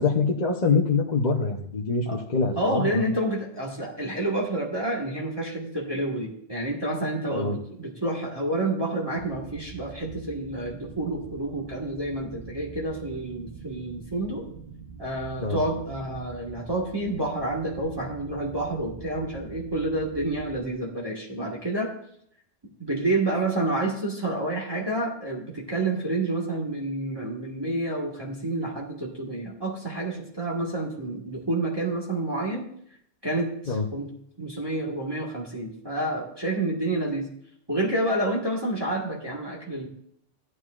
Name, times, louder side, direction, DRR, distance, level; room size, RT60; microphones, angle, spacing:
voice 1, 0.0-3.0 7.3-7.6 15.4-15.6 33.7-33.8, left 4 dB, 40° left, -1 dB, 0.9 m, -24 dB
voice 2, 2.6-14.4 15.0-21.9 22.8-32.7 33.2-34.1 34.4-37.3 37.7-39.9, right 2 dB, 20° right, -3 dB, 1.6 m, -29 dB
sound 1, 9.2-20.7, right 6 dB, 40° right, 1.1 m, -44 dB
15.0 x 9.6 x 2.5 m, 0.68 s
omnidirectional pair, 1.3 m